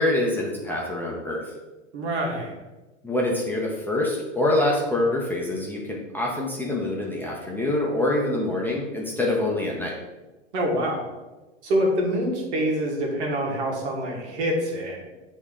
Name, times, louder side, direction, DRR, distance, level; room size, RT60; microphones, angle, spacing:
voice 1, 0.0-1.4 3.0-9.9, left 1 dB, 5° left, -4 dB, 0.9 m, -25 dB
voice 2, 1.9-2.6 10.5-11.1 11.6-15.1, equal, 60° right, 0 dB, 1.8 m, -26 dB
8.0 x 3.2 x 3.7 m, 1.1 s
hypercardioid pair, 105°, 38 cm